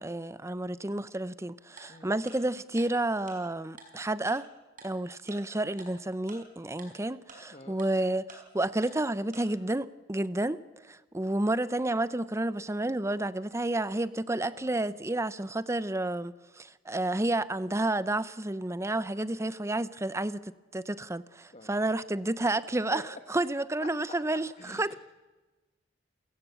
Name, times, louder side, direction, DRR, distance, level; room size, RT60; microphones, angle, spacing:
voice 1, 0.0-4.5 4.8-10.6 10.8-23.0 23.3-25.0, right 2 dB, 15° right, 0.7 m, -30 dB
Tick-tock, 1.8-1.9 2.3-2.4 2.8-2.9 3.3-3.4 3.8-3.9 4.3-4.4 4.8-4.9 5.3-5.4 5.8-5.9 6.3-6.4 6.8-6.9 7.3-7.4 7.8-7.9 8.3-8.4 8.8-8.9 9.3-9.4, right 4 dB, 50° right, 5.5 m, -47 dB
voice 2, 14.4-15.0 21.5-21.9 22.9-23.2 23.8-24.2 24.6-25.0, left 2 dB, 35° left, 1.4 m, -47 dB
30.0 x 16.0 x 8.3 m
head